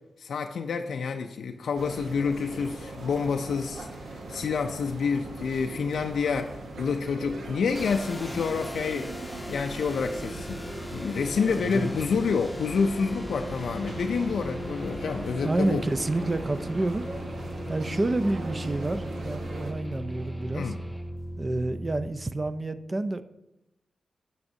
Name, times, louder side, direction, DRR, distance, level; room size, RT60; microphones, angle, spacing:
voice 1, 0.2-9.2 9.5-10.6 10.9-15.8 20.5-20.8, left 5 dB, 80° left, 4 dB, 0.4 m, -28 dB
sound 1, 1.7-19.7, right 2 dB, 75° right, 0.9 m, -40 dB
sound 2, 7.7-22.1, equal, 15° left, 0.7 m, -38 dB
voice 2, 11.5-11.9 15.4-17.1 17.7-20.7 21.4-23.2, right 2 dB, 40° right, 12 dB, 0.5 m, -29 dB
Guitar, 13.5-21.1, equal, 10° right, 1.5 m, -50 dB
9.4 x 5.9 x 2.7 m, 0.90 s
supercardioid pair, 40°, 0 cm